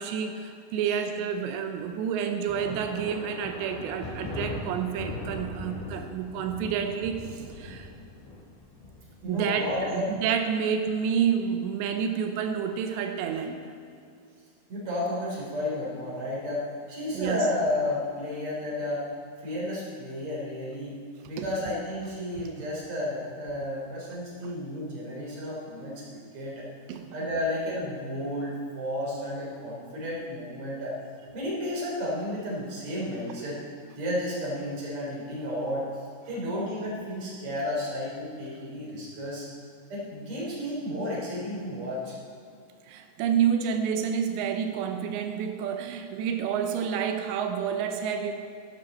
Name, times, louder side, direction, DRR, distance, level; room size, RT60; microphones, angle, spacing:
voice 1, 0.0-7.9 9.3-13.6 17.1-17.4 21.4-21.5 22.4-22.5 24.4-24.5 26.9-27.2 42.9-48.4, right 7 dB, 90° right, 6 dB, 3.0 m, -29 dB
sound 1, 2.5-9.8, left 1 dB, 70° left, 5.2 m, -39 dB
voice 2, 9.2-10.0 14.7-19.0 19.4-21.0 21.2-26.7 27.1-31.0 31.3-33.6 33.9-35.8 36.3-39.5 39.9-42.2, left 1 dB, 35° right, -6 dB, 4.1 m, -32 dB
12.5 x 11.5 x 4.3 m, 2.4 s
omnidirectional pair, 4.9 m